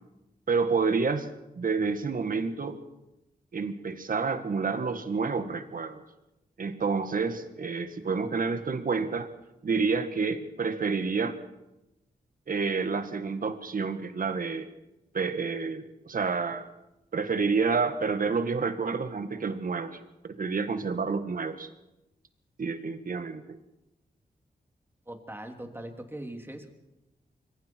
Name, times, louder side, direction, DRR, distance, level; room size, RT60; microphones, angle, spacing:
voice 1, 0.5-1.3 1.5-2.8 3.5-6.0 6.6-9.3 9.6-11.3 12.5-14.7 15.1-16.7 17.1-21.7 22.6-23.6, right 4 dB, 60° right, 9 dB, 1.8 m, -29 dB
voice 2, 25.1-26.7, right 1 dB, 15° right, 4 dB, 3.3 m, -40 dB
26.0 x 22.0 x 4.7 m, 0.93 s
cardioid pair, 65°, 16 cm